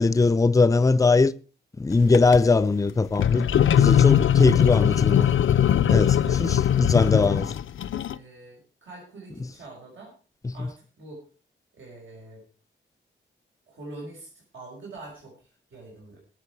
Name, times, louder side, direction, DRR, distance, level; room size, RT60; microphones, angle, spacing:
voice 1, 0.0-1.3 1.8-3.5 3.7-5.3 5.9-7.5 10.4-10.7, left 3 dB, 15° left, 0.5 m, -21 dB
sound 1, 2.0-2.4 3.1-8.1, left 10 dB, 85° left, 0.6 m, -20 dB
voice 2, 5.9-6.6 8.1-10.1 10.5-11.2 11.7-12.4 13.7-16.2, right 2 dB, 85° right, 5.4 m, -44 dB
21.5 x 7.3 x 4.7 m
wide cardioid pair, 170°, 20 cm